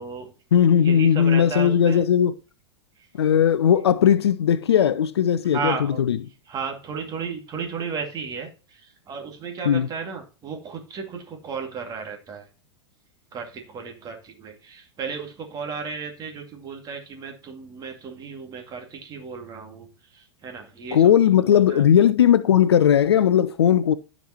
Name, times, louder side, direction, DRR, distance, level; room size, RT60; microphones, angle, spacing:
voice 1, 0.0-0.3 0.7-2.0 3.0-3.1 5.5-6.0 6.4-12.5 13.3-21.1 21.4-21.8, right 5 dB, 25° right, 2.2 m, -34 dB
voice 2, 0.5-2.3 3.2-5.7 6.1-6.2 9.7-9.9 20.9-23.9, left 9 dB, 65° left, 0.5 m, -18 dB
13.5 x 5.2 x 2.9 m
figure-of-eight pair, 90°, 14 cm